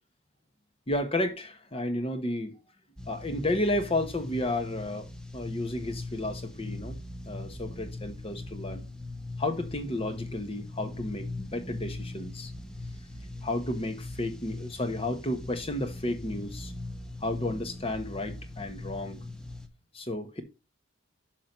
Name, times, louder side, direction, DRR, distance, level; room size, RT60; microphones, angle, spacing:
voice 1, 0.9-2.6 3.1-5.1 5.3-7.0 7.2-8.8 9.4-12.5 13.4-16.7 17.2-19.2 19.9-20.4, left 1 dB, 25° left, 1.1 m, -32 dB
sound 1, 3.0-19.7, left 2 dB, 5° left, 0.8 m, -40 dB
6.1 x 6.0 x 5.2 m
head